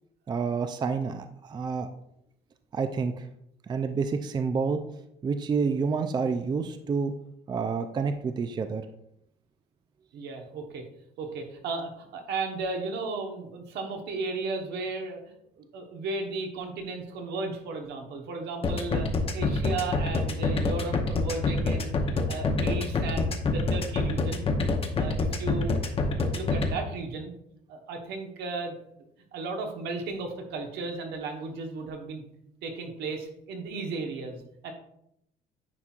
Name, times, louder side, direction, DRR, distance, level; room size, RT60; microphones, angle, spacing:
voice 1, 0.3-1.9 2.7-3.3 3.7-4.8 5.2-7.1 7.5-8.9, right 5 dB, 25° right, 8 dB, 0.4 m, -28 dB
voice 2, 10.1-10.8 11.2-15.2 15.6-19.1 19.3-24.4 25.0-25.7 26.0-27.3 27.7-28.9 29.3-32.2 32.6-34.7, right 3 dB, 75° right, 3 dB, 1.2 m, -35 dB
sound 1, 18.6-26.7, left 3 dB, 35° left, 0.8 m, -26 dB
9.7 x 4.3 x 2.4 m, 0.76 s
cardioid pair, 110°, 17 cm